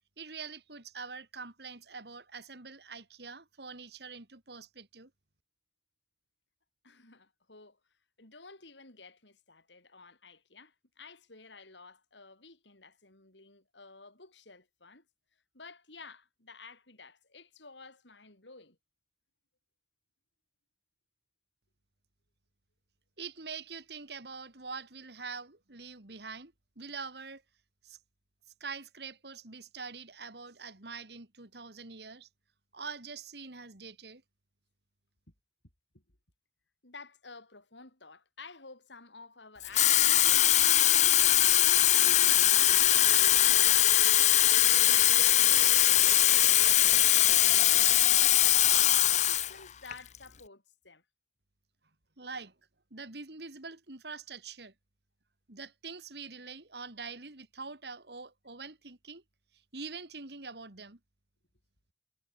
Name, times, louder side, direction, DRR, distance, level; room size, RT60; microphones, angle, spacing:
voice 1, 0.2-5.1 23.2-27.4 27.8-28.0 28.6-32.3 32.7-34.2 52.2-52.5 52.9-54.7 55.5-59.2 59.7-61.0, right 4 dB, 65° right, 2.6 m, -44 dB
voice 2, 6.8-7.8 8.2-15.1 15.5-18.8 35.9-36.0 36.8-48.7 49.1-51.0, left 4 dB, 90° left, 5.8 m, -52 dB
Water tap faucet / Fill (with liquid), 39.6-49.5 49.9-50.2, left 13 dB, 40° left, 0.6 m, -22 dB
head